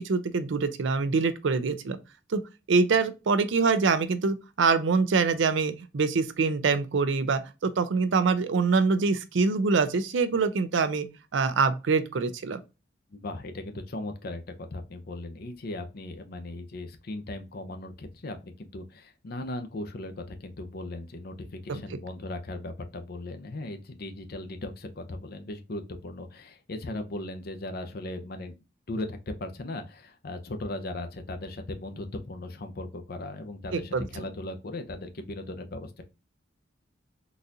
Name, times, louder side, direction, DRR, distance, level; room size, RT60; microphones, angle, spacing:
voice 1, 0.0-2.0 2.3-2.4 2.7-11.1 11.3-12.6 21.7-22.0 33.7-34.1, right 4 dB, 80° right, 0.5 m, -25 dB
voice 2, 13.1-28.6 28.9-36.0, left 2 dB, 55° left, 0.6 m, -38 dB
3.9 x 2.5 x 2.7 m
head